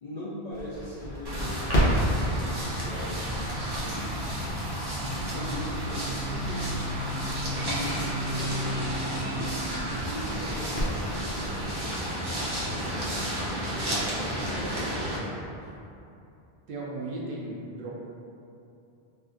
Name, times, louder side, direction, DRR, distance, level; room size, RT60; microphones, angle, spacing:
voice 1, 0.0-4.1 5.0-6.8 7.3-11.6 14.2-15.4, left 1 dB, 55° left, -7 dB, 0.5 m, -40 dB
Crackle, 0.5-11.7, equal, 85° left, 1.1 m, -33 dB
sound 1, 1.2-15.2, right 1 dB, 30° right, 0.4 m, -31 dB
voice 2, 13.2-14.1 16.7-17.9, right 2 dB, 65° right, -4 dB, 0.7 m, -38 dB
3.6 x 2.4 x 2.5 m, 2.7 s
omnidirectional pair, 1.0 m